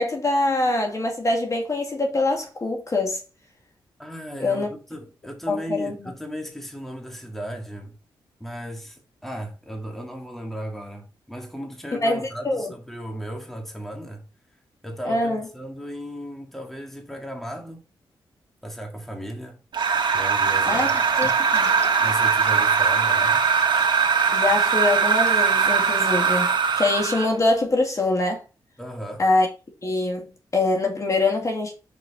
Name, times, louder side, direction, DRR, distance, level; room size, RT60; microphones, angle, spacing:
voice 1, 0.0-3.2 4.4-4.7 5.5-6.1 12.0-12.7 15.0-15.4 20.6-20.9 21.2-21.8 24.3-28.4 29.2-29.5 29.8-30.3 30.5-31.7, left 2 dB, 35° left, 2.1 m, -24 dB
voice 2, 4.0-8.0 8.4-14.2 14.8-17.8 18.6-19.6 20.1-20.9 22.0-23.4 28.8-29.2, equal, 5° left, 2.0 m, -36 dB
sound 1, 19.7-27.4, right 6 dB, 60° right, 1.5 m, -21 dB
sound 2, 20.7-26.1, right 2 dB, 30° right, 1.9 m, -41 dB
6.0 x 5.4 x 4.2 m
cardioid pair, 70°, 9 cm